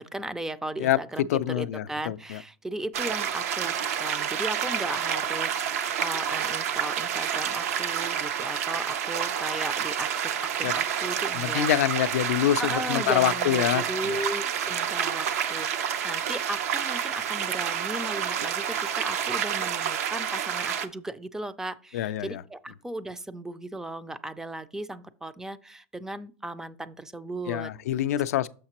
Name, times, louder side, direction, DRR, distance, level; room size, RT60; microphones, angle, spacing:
voice 1, 0.0-1.3 1.5-3.7 4.0-11.7 12.6-27.7, right 1 dB, 5° right, 0.3 m, -36 dB
voice 2, 1.3-2.4 10.6-10.7 11.3-14.2 21.9-22.4 27.5-28.5, left 12 dB, 85° left, 0.4 m, -26 dB
sound 1, 2.9-20.9, right 8 dB, 80° right, 0.6 m, -29 dB
6.5 x 5.7 x 2.9 m
supercardioid pair, 135°, 8 cm